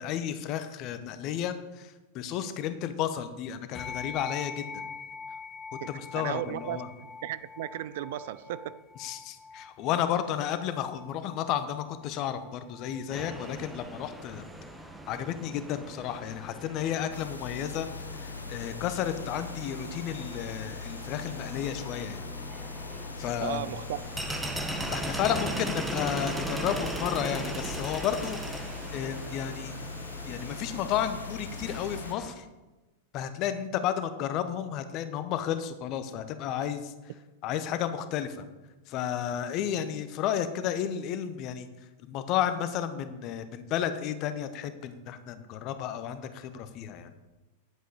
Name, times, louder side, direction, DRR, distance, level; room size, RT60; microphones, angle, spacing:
voice 1, 0.0-4.8 5.7-6.9 9.0-14.5 15.1-22.2 23.2-23.6 24.9-29.7 30.3-32.5 33.1-36.9 37.4-38.5 38.9-41.7 42.0-47.1, left 10 dB, 40° left, 0.9 m, -32 dB
sound 1, 3.7-13.4, left 5 dB, 20° left, 1.2 m, -44 dB
voice 2, 5.8-6.8 7.2-8.8 23.4-24.1, right 13 dB, 55° right, 0.4 m, -35 dB
sound 2, 13.1-32.3, right 1 dB, 5° right, 1.0 m, -39 dB
sound 3, 17.1-32.1, left 5 dB, 85° left, 0.4 m, -41 dB
9.7 x 8.0 x 4.8 m
figure-of-eight pair, 95°, 0 cm